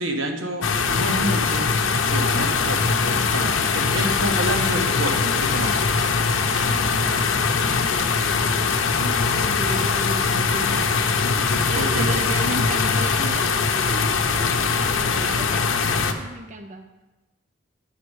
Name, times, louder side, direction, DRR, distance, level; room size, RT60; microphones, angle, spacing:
voice 1, 0.0-1.7 2.1-5.8 11.7-12.1, right 1 dB, 85° right, 3 dB, 1.1 m, -28 dB
sound 1, 0.6-16.1, left 5 dB, 80° left, 0.7 m, -22 dB
sound 2, 4.0-9.3 10.7-10.8, left 2 dB, 20° left, 1.5 m, -41 dB
voice 2, 6.4-7.5 7.8-8.7 9.0-16.9, right 2 dB, 40° right, 6 dB, 0.5 m, -35 dB
9.0 x 4.7 x 6.4 m, 1.1 s
head